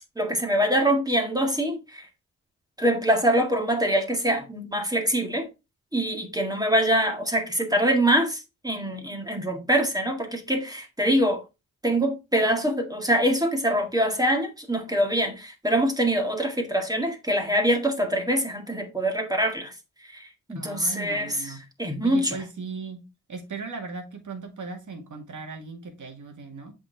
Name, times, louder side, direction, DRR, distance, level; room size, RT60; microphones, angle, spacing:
voice 1, 0.2-2.1 2.8-5.5 5.9-11.4 11.8-19.7 20.1-21.5 21.8-22.4, right 1 dB, 10° right, 1.9 m, -24 dB
voice 2, 20.6-21.6 22.0-23.0 23.3-26.7, right 4 dB, 60° right, 2.2 m, -37 dB
7.5 x 4.6 x 3.3 m
supercardioid pair, 50°, 33 cm